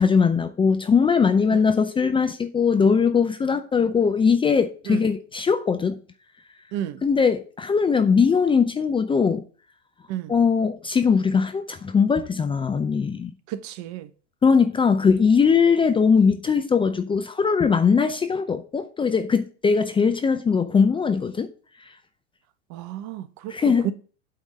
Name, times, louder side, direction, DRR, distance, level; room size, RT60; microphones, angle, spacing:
voice 1, 0.0-6.0 7.0-9.4 10.3-13.3 14.4-21.5 23.5-23.9, left 5 dB, 15° left, 0.5 m, -20 dB
voice 2, 6.7-7.0 10.1-10.3 13.5-14.1 22.7-23.9, right 12 dB, 50° right, 0.9 m, -32 dB
8.4 x 3.6 x 6.4 m
hypercardioid pair, 90°, 36 cm